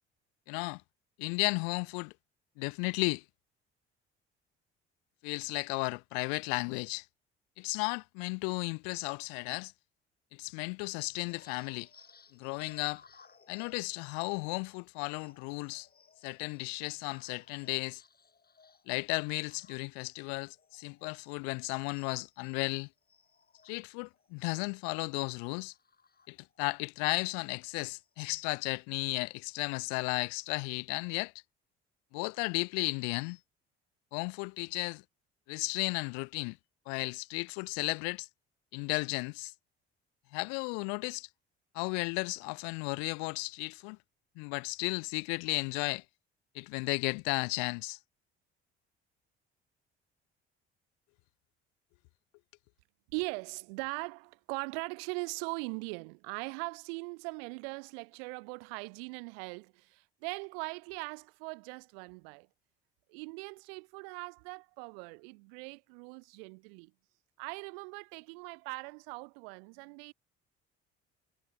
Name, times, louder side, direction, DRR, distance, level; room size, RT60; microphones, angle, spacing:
voice 1, 0.5-0.8 1.2-2.1 2.6-3.2 5.2-7.1 7.6-9.7 10.3-11.9 12.3-13.0 13.5-15.9 16.2-18.0 18.9-22.9 23.6-25.7 26.3-31.3 32.1-33.4 34.1-35.0 35.5-36.6 36.9-38.3 38.7-39.5 40.3-41.3 41.7-44.0 44.4-46.0 46.5-48.0, left 40 dB or more, 55° left, 0.6 m, -34 dB
sound 1, 11.3-21.6 21.9-26.7 27.1-27.3 27.6-28.8 29.1-29.6, left 5 dB, 30° left, 5.8 m, -62 dB
voice 2, 53.1-62.5 63.1-66.9 67.4-70.1, right 34 dB, 60° right, 1.0 m, -40 dB
figure-of-eight pair, 50°, 33 cm